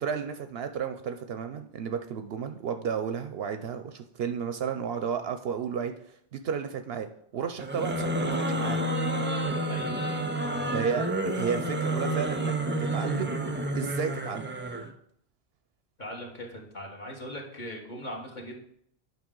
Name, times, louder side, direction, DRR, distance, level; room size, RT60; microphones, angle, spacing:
voice 1, 0.0-5.9 6.3-8.8 10.7-12.5 12.8-13.4 13.7-14.5, right 7 dB, 65° right, 8 dB, 0.7 m, -32 dB
sound 1, 7.6-14.9, right 1 dB, 15° right, 0.4 m, -29 dB
voice 2, 9.7-10.1 10.4-10.7 16.0-18.6, equal, 40° left, -1 dB, 1.6 m, -40 dB
8.8 x 5.5 x 3.8 m, 0.69 s
omnidirectional pair, 1.2 m